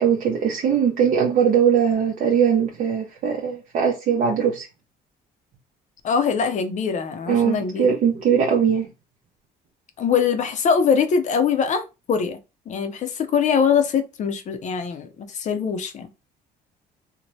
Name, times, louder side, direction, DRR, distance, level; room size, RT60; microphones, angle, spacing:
voice 1, 0.0-4.7 7.3-8.9, right 7 dB, 55° right, 0.6 m, -20 dB
voice 2, 6.0-7.9 10.0-12.4 12.7-16.1, left 6 dB, 45° left, 0.5 m, -22 dB
2.7 x 2.1 x 3.0 m
cardioid pair, 110°, 17 cm